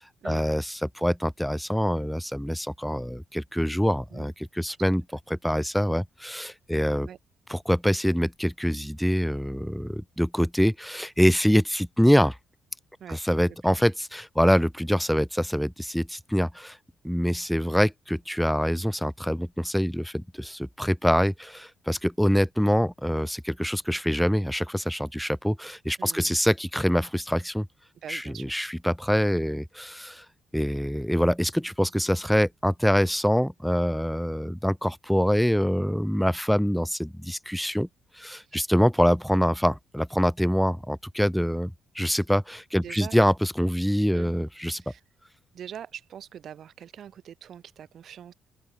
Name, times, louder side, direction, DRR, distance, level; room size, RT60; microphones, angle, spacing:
voice 1, 0.2-5.0 5.3-7.1 7.5-12.4 13.1-16.8 17.0-27.7 28.1-30.2 30.5-37.9 38.2-44.8, equal, ahead, 0.6 m, -25 dB
voice 2, 13.0-13.6 26.0-26.3 28.0-28.5 38.4-38.6 42.8-43.2 44.1-44.3 44.8-45.0 45.5-48.3, right 9 dB, 60° right, 4.9 m, -43 dB
open air
cardioid pair, 90°, 0 cm